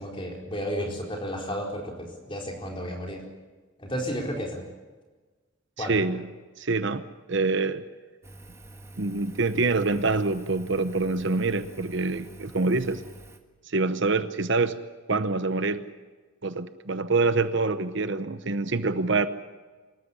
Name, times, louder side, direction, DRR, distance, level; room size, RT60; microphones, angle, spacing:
voice 1, 0.0-3.2 3.8-4.6 5.8-6.0, equal, 25° left, 0 dB, 4.4 m, -32 dB
voice 2, 5.8-6.2 6.6-7.0 7.3-7.8 9.0-13.0 13.7-14.8 15.1-15.8 16.4-19.3, right 3 dB, 55° right, 11 dB, 0.9 m, -25 dB
Engine, 8.2-13.4, right 1 dB, 15° right, 1.5 m, -47 dB
25.5 x 13.5 x 9.9 m, 1.3 s
head